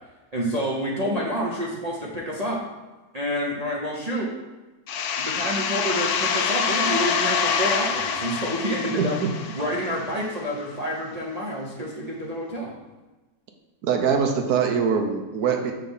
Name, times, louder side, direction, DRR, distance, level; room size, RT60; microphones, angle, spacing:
voice 1, 0.3-2.6 3.1-4.3 5.2-9.2 9.5-12.7, equal, 35° right, -4 dB, 0.6 m, -28 dB
sound 1, 4.9-10.4, left 6 dB, 85° left, 0.6 m, -26 dB
voice 2, 9.0-9.3 13.8-15.7, right 6 dB, 70° right, 3 dB, 1.2 m, -23 dB
5.7 x 3.3 x 5.4 m, 1.2 s
omnidirectional pair, 1.8 m